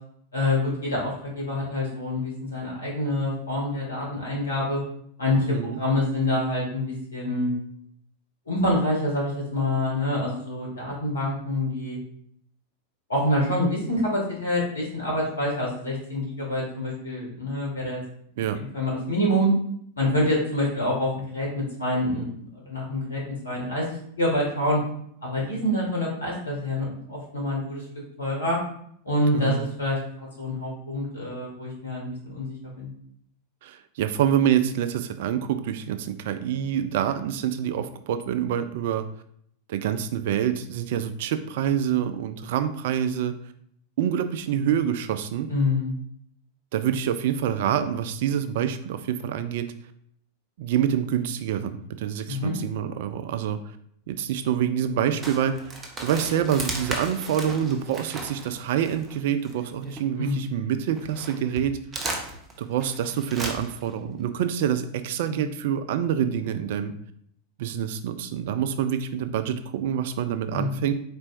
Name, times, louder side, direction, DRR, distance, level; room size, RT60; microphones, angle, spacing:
voice 1, 0.3-4.8 5.2-6.8 7.1-7.5 8.5-12.0 13.1-18.0 18.6-19.5 20.0-24.8 25.2-27.8 28.2-28.6 29.1-32.9 45.5-45.9 52.3-52.5 60.2-60.4 65.3-65.5 70.5-70.9, left 1 dB, 75° left, -4 dB, 1.9 m, -26 dB
voice 2, 5.5-5.8 18.4-18.6 29.3-29.7 33.6-39.0 39.7-43.3 44.0-45.5 46.7-49.7 50.6-53.6 54.1-55.5 56.0-61.8 62.6-66.9 67.6-70.9, right 9 dB, 55° right, 10 dB, 0.3 m, -26 dB
sound 1, 55.2-60.5 60.9-63.9, right 2 dB, 20° right, 0.8 m, -36 dB
4.4 x 4.3 x 2.5 m, 0.67 s
figure-of-eight pair, 90°, 0 cm